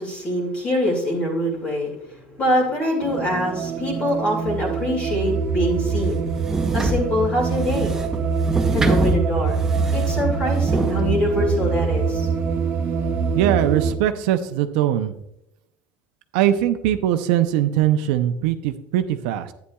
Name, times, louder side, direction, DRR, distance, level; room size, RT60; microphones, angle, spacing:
voice 1, 0.0-6.2 6.7-7.9 8.7-9.6 9.9-12.3, left 1 dB, 30° left, -3 dB, 2.1 m, -24 dB
sound 1, 3.0-14.0, right 5 dB, 45° right, 1.0 m, -24 dB
sound 2, 6.0-11.0, right 1 dB, 10° right, 0.6 m, -26 dB
voice 2, 13.3-15.1 16.3-19.5, right 11 dB, 85° right, 9 dB, 0.6 m, -21 dB
11.5 x 9.3 x 2.3 m, 0.83 s
cardioid pair, 155°, 5 cm